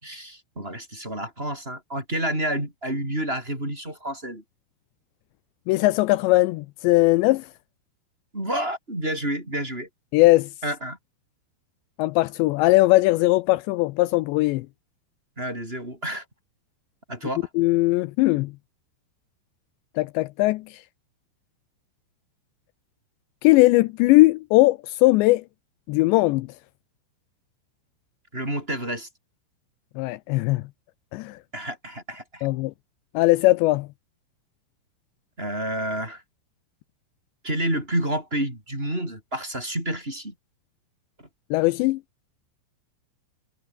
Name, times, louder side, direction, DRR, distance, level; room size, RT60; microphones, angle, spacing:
voice 1, 0.0-4.4 8.3-9.9 10.6-11.0 15.4-16.2 17.1-17.5 28.3-29.1 31.5-32.5 35.4-36.2 37.4-40.3, right 1 dB, 10° right, 7.4 m, -29 dB
voice 2, 5.7-7.5 10.1-10.5 12.0-14.7 17.6-18.5 20.0-20.8 23.4-25.4 25.9-26.5 30.0-30.6 31.1-31.4 32.4-32.7 33.1-33.9 41.5-42.0, left 20 dB, 85° left, 2.7 m, -19 dB
omnidirectional pair, 5.4 m